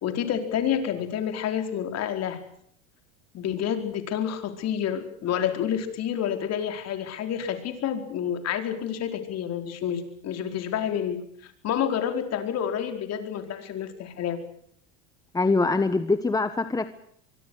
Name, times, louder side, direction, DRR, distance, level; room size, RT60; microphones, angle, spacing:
voice 1, 0.0-2.4 3.3-14.4, left 9 dB, 45° left, 7 dB, 4.6 m, -29 dB
voice 2, 15.3-16.9, left 3 dB, 10° left, 11 dB, 1.2 m, -23 dB
24.0 x 23.5 x 6.4 m, 0.65 s
supercardioid pair, 120°, 37 cm